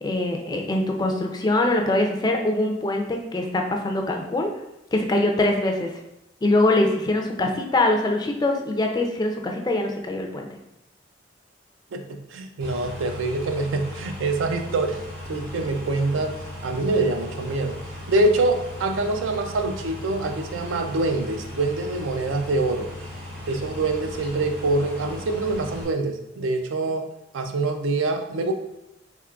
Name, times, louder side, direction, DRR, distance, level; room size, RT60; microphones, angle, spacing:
voice 1, 0.0-4.5 4.9-5.9 6.4-10.5, left 2 dB, 20° left, 3 dB, 0.3 m, -23 dB
voice 2, 11.9-15.0 15.3-16.4 16.6-17.8 18.1-22.9 23.5-27.1 27.3-28.5, right 2 dB, 85° right, 6 dB, 0.4 m, -25 dB
sound 1, 12.6-25.8, left 1 dB, 55° right, 1.1 m, -37 dB
3.6 x 3.1 x 2.3 m, 0.89 s
head